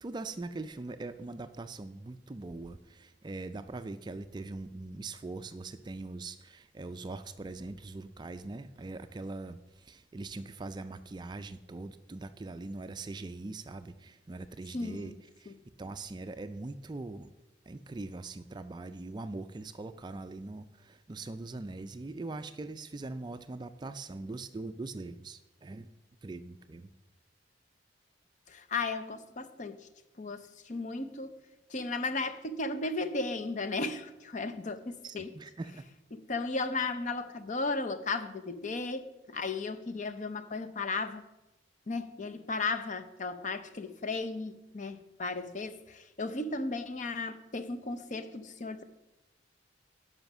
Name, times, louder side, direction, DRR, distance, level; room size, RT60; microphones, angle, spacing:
voice 1, 0.0-15.1 15.4-15.5 15.8-17.3 17.7-25.9 26.2-26.9 35.0-35.8, right 2 dB, 25° right, 10 dB, 0.3 m, -42 dB
voice 2, 14.7-15.2 15.5-15.6 28.5-29.8 30.2-31.4 31.7-35.3 36.1-41.2 41.9-48.8, left 3 dB, 40° left, 10 dB, 0.6 m, -35 dB
10.5 x 5.6 x 6.0 m, 0.99 s
head